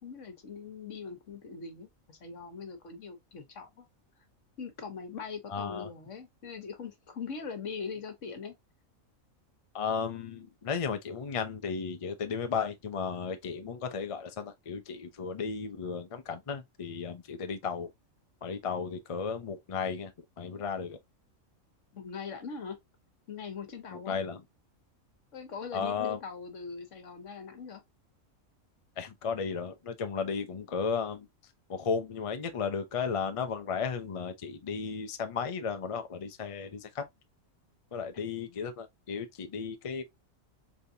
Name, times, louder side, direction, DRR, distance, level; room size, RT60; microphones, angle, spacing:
voice 1, 0.0-3.9 4.6-8.5 21.9-22.8 23.3-24.2 25.3-27.8 38.2-38.6, left 5 dB, 65° left, 1.4 m, -41 dB
voice 2, 5.5-5.9 9.7-17.9 18.4-21.0 23.9-24.4 25.7-26.2 29.0-31.3 31.7-37.0 37.9-40.0, left 6 dB, 40° left, 0.4 m, -34 dB
4.1 x 3.4 x 2.6 m
omnidirectional pair, 1.4 m